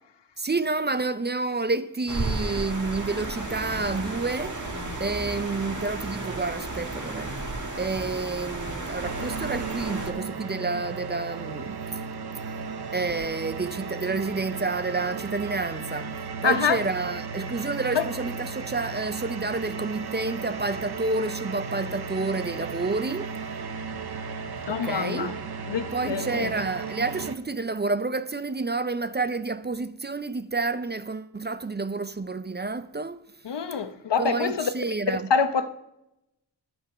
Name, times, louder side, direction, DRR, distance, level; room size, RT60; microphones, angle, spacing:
voice 1, 0.4-4.6 5.0-7.4 7.8-12.1 12.4-23.3 24.7-25.3 25.9-33.2 34.2-35.3, right 3 dB, 25° right, 0.5 m, -29 dB
sound 1, 2.1-10.1, right 2 dB, 45° right, 1.9 m, -33 dB
sound 2, 9.0-27.4, right 5 dB, 65° right, 0.8 m, -35 dB
voice 2, 16.4-16.8 17.9-18.0 24.7-25.4 25.7-26.5 33.4-34.7 35.3-35.7, left 6 dB, 80° left, 0.9 m, -25 dB
11.5 x 6.0 x 6.7 m
wide cardioid pair, 70°, 42 cm